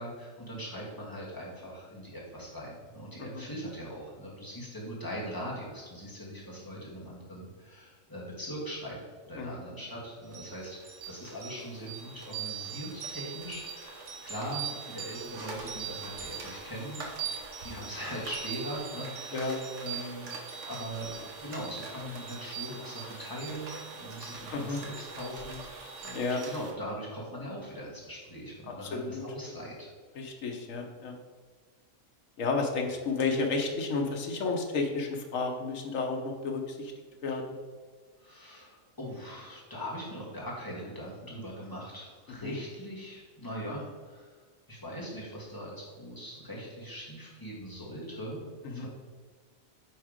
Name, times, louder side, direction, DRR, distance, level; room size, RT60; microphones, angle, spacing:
voice 1, 0.0-9.0 9.2-17.4 17.6-20.3 20.7-23.7 24.0-29.9 38.2-44.4 44.7-48.9, equal, 15° left, -5 dB, 2.0 m, -41 dB
sound 1, 10.3-26.7, right 6 dB, 65° right, 1.4 m, -41 dB
voice 2, 28.9-29.2 30.2-31.2 32.4-36.9 37.2-37.4 42.4-42.5 48.6-48.9, left 4 dB, 75° left, 2 dB, 1.3 m, -31 dB
9.0 x 3.6 x 5.0 m, 1.5 s
omnidirectional pair, 1.4 m